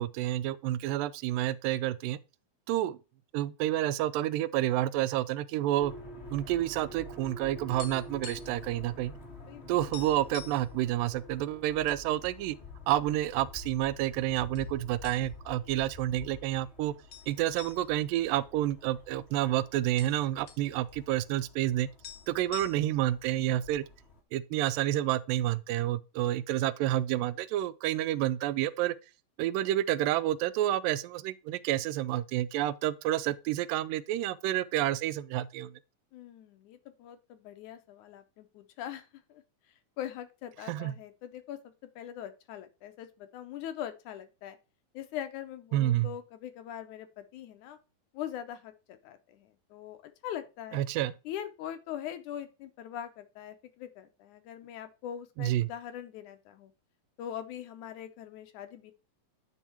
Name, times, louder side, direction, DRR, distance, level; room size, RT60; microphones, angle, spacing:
voice 1, 0.0-2.2 2.7-3.0 3.3-5.9 6.3-9.1 9.7-12.6 12.9-16.9 17.3-21.9 22.3-23.8 24.3-29.0 29.4-35.7 40.7-41.0 45.7-46.1 50.7-51.1 55.4-55.7, right 13 dB, 85° right, 2.2 m, -29 dB
sound 1, 5.8-24.2, left 2 dB, 40° left, 0.9 m, -48 dB
sound 2, 7.8-8.7 8.9-9.1 9.5-9.6 9.9-10.7 11.3-12.0 12.4-12.5 13.2-13.9 14.5-14.7 15.0-15.6 15.9-16.0 17.1-19.2 19.5-19.6 19.8-20.7 21.7-21.8 22.0-23.1, left 10 dB, 55° left, 1.6 m, -47 dB
voice 2, 36.1-39.4 40.0-41.6 42.0-44.6 44.9-47.1 47.3-47.8 48.1-50.8 51.3-56.7 57.2-58.9, left 10 dB, 75° left, 2.0 m, -42 dB
10.0 x 4.3 x 4.4 m
omnidirectional pair, 4.0 m